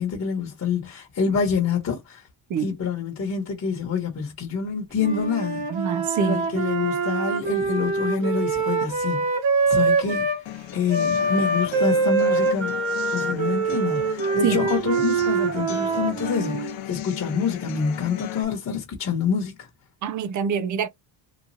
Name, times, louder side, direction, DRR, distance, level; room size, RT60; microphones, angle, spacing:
voice 1, 0.0-2.2 2.6-5.7 6.2-9.2 9.7-10.3 10.7-12.8 13.1-19.6, left 5 dB, 35° left, 1.2 m, -26 dB
Wind instrument woodwind instrument, 5.0-10.4 10.9-16.8, right 3 dB, 70° right, 1.1 m, -24 dB
voice 2, 5.7-6.4 14.4-14.6 20.0-20.9, right 7 dB, 40° right, 0.5 m, -25 dB
sound 1, 10.5-18.4, left 12 dB, 75° left, 0.7 m, -37 dB
3.0 x 2.3 x 2.7 m
cardioid pair, 120°, 46 cm